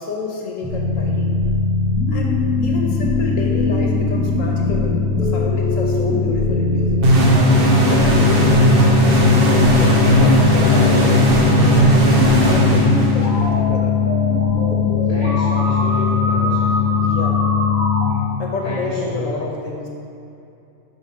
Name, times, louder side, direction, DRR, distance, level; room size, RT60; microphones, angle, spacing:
voice 1, 0.0-1.4 2.1-7.2 7.9-14.0 16.9-17.4 18.4-19.9, left 4 dB, 85° left, 0 dB, 1.3 m, -29 dB
sound 1, 0.6-18.1, left 5 dB, 5° right, 1.0 m, -19 dB
sound 2, 7.0-13.5, right 1 dB, 50° right, 1.0 m, -15 dB
voice 2, 15.1-16.9 18.1-19.3, left 1 dB, 30° left, -9 dB, 1.1 m, -30 dB
5.9 x 5.1 x 4.4 m, 2.6 s
omnidirectional pair, 1.3 m